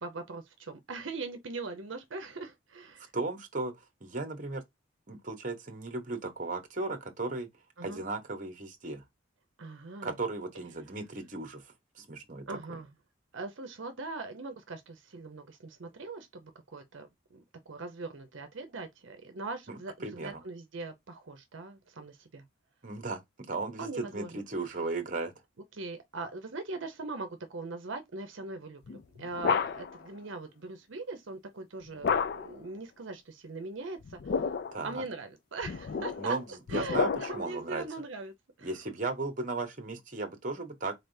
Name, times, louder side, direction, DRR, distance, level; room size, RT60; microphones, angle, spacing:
voice 1, 0.0-3.1 7.8-8.0 9.6-10.2 12.5-12.9 13.3-22.4 23.8-24.4 25.7-34.5 34.8-36.4 36.7-38.8, right 3 dB, 70° right, 0.7 m, -41 dB
voice 2, 3.1-4.6 5.1-7.5 7.8-9.0 10.0-12.6 19.7-20.4 22.8-25.3 34.7-35.0 36.2-37.8 38.6-40.9, right 3 dB, 40° right, 1.0 m, -36 dB
sound 1, 28.9-30.1 32.0-32.7 34.0-34.8 35.6-37.6, left 5 dB, 50° left, 0.3 m, -31 dB
4.1 x 3.4 x 2.7 m
head